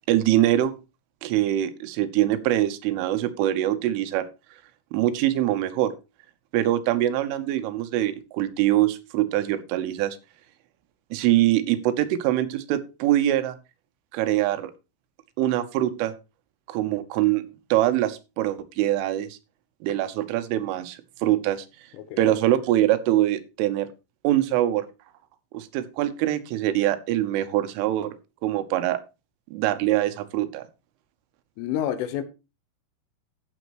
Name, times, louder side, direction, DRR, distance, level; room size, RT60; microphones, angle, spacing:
voice 1, 0.1-0.7 1.2-4.3 4.9-5.9 6.5-10.2 11.1-13.6 14.1-14.7 15.4-16.1 16.7-17.4 17.7-19.4 19.8-21.7 22.2-23.9 24.2-24.9 25.5-29.0 29.5-30.6, right 13 dB, 80° right, 3.3 m, -23 dB
voice 2, 31.6-32.2, left 10 dB, 80° left, 3.5 m, -28 dB
15.0 x 7.0 x 3.0 m
omnidirectional pair, 5.8 m